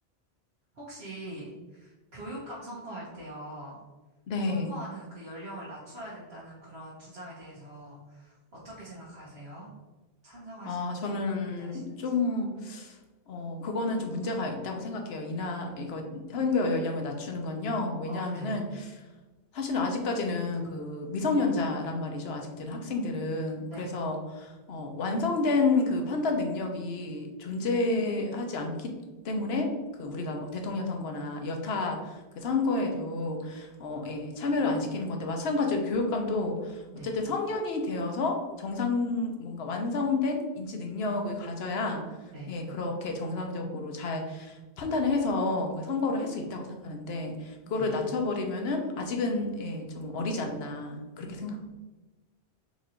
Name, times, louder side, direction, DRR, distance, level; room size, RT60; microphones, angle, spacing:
voice 1, 0.7-3.8 4.5-8.4 8.6-9.7 10.2-12.1 18.0-18.6 23.7-23.9 36.9-37.1 42.3-42.5 47.7-47.9 51.5-51.6, right 1 dB, 70° right, -8 dB, 1.3 m, -43 dB
voice 2, 4.3-4.7 10.6-13.0 13.3-18.9 19.5-28.9 29.2-42.0 42.5-51.6, left 3 dB, 75° left, 3 dB, 1.0 m, -30 dB
4.4 x 2.5 x 4.3 m, 1.2 s
omnidirectional pair, 1.1 m